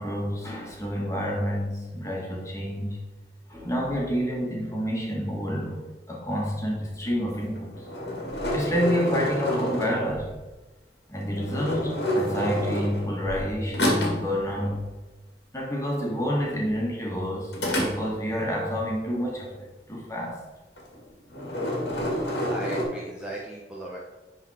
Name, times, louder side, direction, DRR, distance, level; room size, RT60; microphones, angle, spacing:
voice 1, 0.0-3.0 3.5-7.8 8.5-10.3 11.1-14.8 15.5-20.4, equal, 15° left, -2 dB, 1.8 m, -29 dB
sound 1, 7.6-10.4 11.3-13.4 13.7-14.3 17.5-18.4 20.8-21.0 21.3-22.8, equal, 75° left, 2.0 m, -28 dB
voice 2, 22.5-24.0, right 1 dB, 5° right, -4 dB, 0.8 m, -37 dB
10.5 x 4.0 x 4.3 m, 1.2 s
head